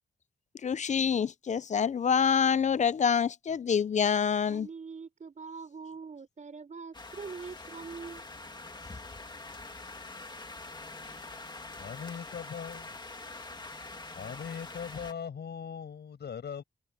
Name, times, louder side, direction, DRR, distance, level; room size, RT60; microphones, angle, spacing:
voice 1, 0.6-4.7, left 7 dB, 45° left, 0.4 m, -26 dB
voice 2, 4.5-8.3, right 5 dB, 45° right, 5.1 m, -43 dB
sound 1, 6.9-15.1, left 3 dB, 25° left, 2.1 m, -44 dB
voice 3, 11.8-13.0 14.1-16.6, left 7 dB, 80° left, 5.5 m, -40 dB
wide cardioid pair, 145°, 17 cm